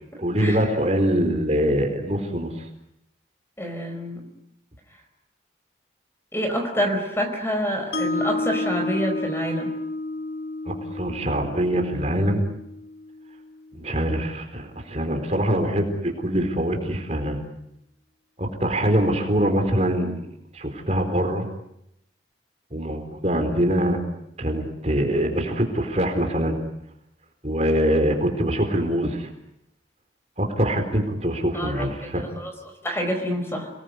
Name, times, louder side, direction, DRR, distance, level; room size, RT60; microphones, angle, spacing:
voice 1, 0.2-2.5 10.7-12.5 13.7-17.4 18.4-20.2 20.5-21.5 22.7-24.0 24.4-26.6 27.4-29.3 30.4-32.2, equal, 35° right, 5 dB, 4.3 m, -23 dB
voice 2, 3.6-4.2 6.3-9.7 31.5-33.7, equal, 15° left, 5 dB, 4.6 m, -27 dB
Mallet percussion, 7.9-14.1, left 2 dB, 65° left, 1.1 m, -31 dB
30.0 x 20.5 x 9.6 m, 0.80 s
head